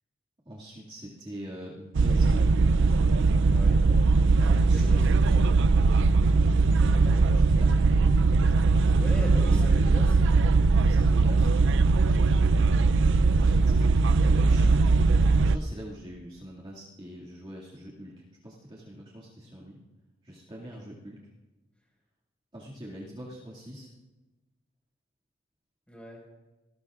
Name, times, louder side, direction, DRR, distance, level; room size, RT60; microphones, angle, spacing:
voice 1, 0.5-2.6 4.4-5.2 6.6-7.8 9.3-10.2 10.7-11.5 13.3-13.7 14.2-14.9 15.4-19.8 20.2-21.2 22.5-23.9, equal, 25° right, -5 dB, 2.2 m, -43 dB
sound 1, 1.9-15.6, right 3 dB, 65° right, 0.5 m, -21 dB
voice 2, 3.5-3.8 4.7-5.5 8.4-8.6 8.9-10.2 20.6-20.7 25.9-26.2, equal, 5° left, -1 dB, 5.1 m, -39 dB
27.0 x 19.5 x 2.5 m, 1.1 s
head